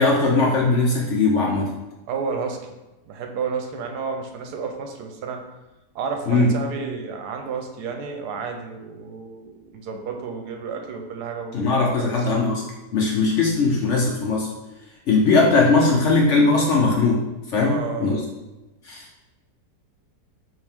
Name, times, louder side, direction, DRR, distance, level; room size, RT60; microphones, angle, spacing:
voice 1, 0.0-1.7 6.3-6.5 11.5-12.6 12.9-14.5 15.1-18.2 18.8-19.1, left 3 dB, 60° left, -2 dB, 0.8 m, -19 dB
voice 2, 2.1-2.6 3.1-5.4 5.9-11.6 12.0-12.3 17.6-18.3, right 5 dB, 80° right, 4 dB, 1.2 m, -31 dB
5.4 x 2.8 x 3.4 m, 1.0 s
omnidirectional pair, 1.7 m